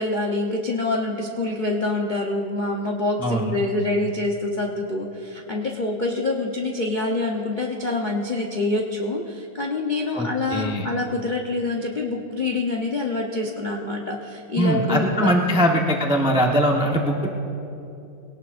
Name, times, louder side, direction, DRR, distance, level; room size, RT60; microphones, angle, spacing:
voice 1, 0.0-15.6, left 2 dB, 80° left, -1 dB, 0.4 m, -26 dB
voice 2, 3.2-3.6 10.1-10.9 14.6-17.3, equal, 10° right, 0 dB, 0.3 m, -21 dB
22.0 x 18.0 x 2.5 m, 2.9 s
omnidirectional pair, 2.3 m